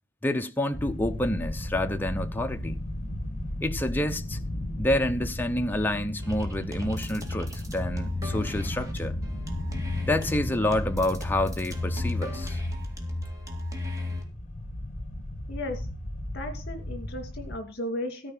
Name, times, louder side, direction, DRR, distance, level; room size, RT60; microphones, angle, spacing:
voice 1, 0.2-2.8 3.6-4.4 4.8-9.1 10.0-12.6, left 1 dB, 10° left, 0.7 m, -28 dB
sound 1, 0.7-17.6, left 1 dB, 40° left, 1.7 m, -35 dB
sound 2, 6.2-14.2, left 2 dB, 15° right, 2.2 m, -33 dB
voice 2, 15.5-15.8 16.3-18.3, left 1 dB, 55° left, 2.6 m, -35 dB
13.5 x 4.8 x 7.2 m
head